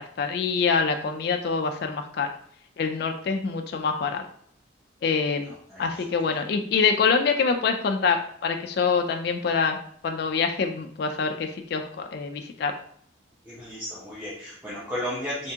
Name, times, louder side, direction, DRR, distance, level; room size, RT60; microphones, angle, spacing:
voice 1, 0.0-2.3 2.8-4.2 5.0-5.5 5.8-9.8 10.0-12.7, left 5 dB, 55° left, 5 dB, 0.3 m, -25 dB
voice 2, 13.5-15.5, equal, 10° right, -9 dB, 0.7 m, -33 dB
3.5 x 3.3 x 2.8 m, 0.63 s
head